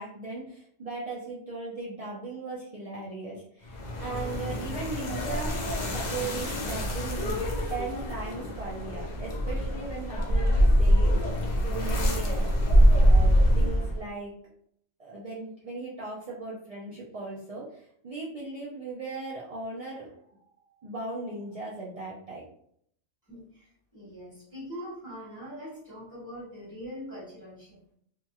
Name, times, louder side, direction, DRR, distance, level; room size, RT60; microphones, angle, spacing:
voice 1, 0.0-5.5 5.9-12.5 13.0-14.3 15.0-22.5, right 3 dB, 60° right, -5 dB, 0.3 m, -38 dB
sound 1, 3.7-14.1, equal, 55° left, 0.5 m, -24 dB
voice 2, 23.3-27.8, equal, 15° left, -8 dB, 1.4 m, -42 dB
2.8 x 2.8 x 2.3 m, 0.67 s
omnidirectional pair, 1.4 m